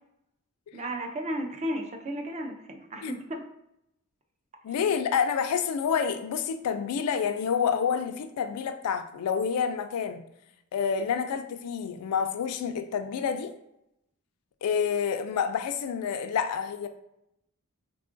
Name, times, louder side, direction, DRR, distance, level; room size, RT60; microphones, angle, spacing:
voice 1, 0.7-3.4, equal, 30° right, 4 dB, 0.4 m, -34 dB
voice 2, 4.6-10.2 10.7-13.5 14.6-16.9, left 7 dB, 85° left, 9 dB, 0.3 m, -28 dB
3.5 x 2.3 x 2.5 m, 0.82 s
head